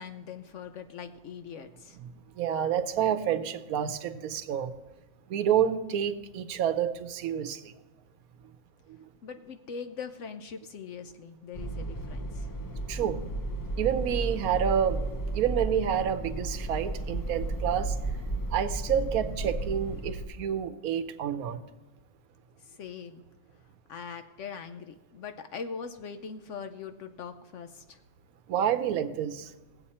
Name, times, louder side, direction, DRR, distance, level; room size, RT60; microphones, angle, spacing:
voice 1, 0.0-2.0 9.2-12.5 22.6-23.2 23.9-28.0, left 6 dB, 65° left, 8 dB, 0.9 m, -41 dB
voice 2, 2.4-4.7 5.3-7.7 12.9-13.2 13.8-15.1 15.3-17.9 18.5-21.6 28.5-29.5, right 9 dB, 85° right, 8 dB, 1.2 m, -28 dB
sound 1, 11.5-20.3, right 2 dB, 30° left, 0.3 m, -33 dB
18.5 x 7.9 x 4.2 m, 1.1 s
omnidirectional pair, 1.5 m